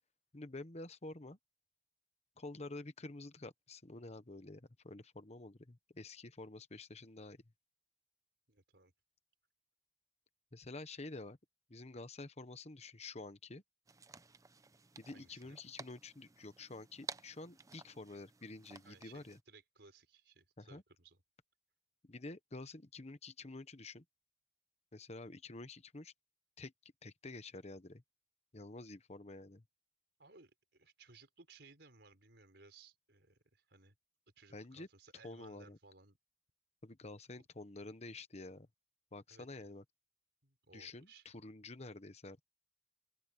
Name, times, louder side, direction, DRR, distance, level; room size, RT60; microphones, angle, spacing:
voice 1, 0.3-1.4 2.4-7.4 10.5-11.4 11.7-13.6 15.0-19.4 20.6-20.8 22.0-24.0 24.9-26.1 26.6-26.7 27.0-28.0 28.5-29.6 34.5-34.9 35.2-35.8 36.8-38.7 39.1-39.8 40.7-42.4, left 2 dB, 40° left, 1.1 m, -49 dB
voice 2, 8.5-8.9 15.1-15.6 18.8-21.2 30.2-34.0 34.4-36.2 39.3-39.7 40.4-41.3, right 3 dB, 70° right, 5.6 m, -62 dB
sound 1, 13.9-19.4, right 4 dB, 20° right, 0.6 m, -53 dB
open air
head